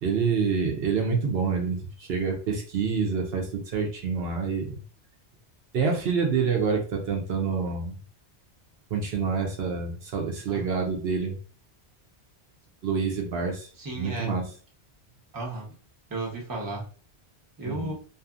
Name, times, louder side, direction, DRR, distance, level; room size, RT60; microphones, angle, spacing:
voice 1, 0.0-4.8 5.7-7.9 8.9-11.4 12.8-13.7 13.9-14.4 17.6-17.9, right 5 dB, 70° right, 1 dB, 0.9 m, -27 dB
voice 2, 13.8-14.3 15.3-15.7 16.1-16.8 17.6-17.9, right 2 dB, 20° right, -3 dB, 0.7 m, -33 dB
2.7 x 2.5 x 2.3 m, 0.39 s
omnidirectional pair, 1.1 m